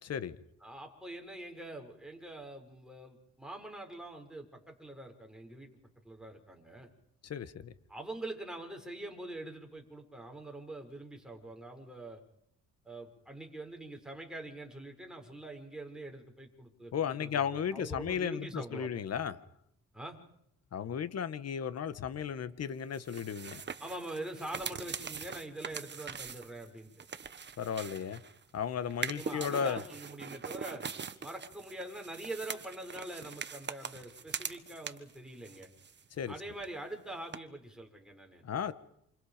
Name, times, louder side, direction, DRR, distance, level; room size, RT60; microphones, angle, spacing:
voice 1, 0.6-5.7 6.0-6.9 7.9-12.2 12.8-19.0 19.9-20.2 23.8-26.9 29.1-30.8 31.2-35.7 36.3-38.4, right 1 dB, ahead, 2 dB, 6.7 m, -44 dB
voice 2, 7.2-7.7 16.9-19.4 20.7-23.6 27.6-28.2 28.5-29.8 36.2-36.3 38.4-38.7, left 8 dB, 55° left, 13 dB, 1.7 m, -35 dB
sound 1, 22.9-28.4 28.9-35.2 35.4-36.3 36.6-36.7 37.3-37.4, right 6 dB, 35° right, 1.7 m, -42 dB
28.5 x 27.5 x 5.3 m, 0.74 s
cardioid pair, 90°, 30 cm